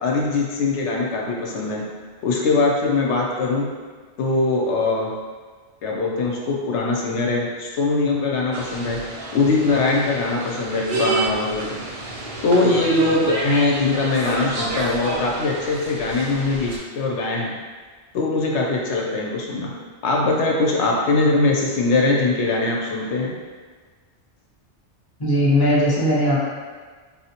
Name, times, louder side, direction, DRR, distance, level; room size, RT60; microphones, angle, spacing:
voice 1, 0.0-1.8 2.2-3.7 4.2-5.1 5.8-9.0 9.3-11.8 12.4-17.5 18.1-19.7 20.0-23.3, left 3 dB, 75° left, -2 dB, 0.8 m, -21 dB
sound 1, 8.5-16.8, right 3 dB, 60° right, 0.3 m, -30 dB
voice 2, 25.2-26.5, equal, 30° left, -7 dB, 0.5 m, -18 dB
4.2 x 2.1 x 2.8 m, 1.5 s
omnidirectional pair, 1.2 m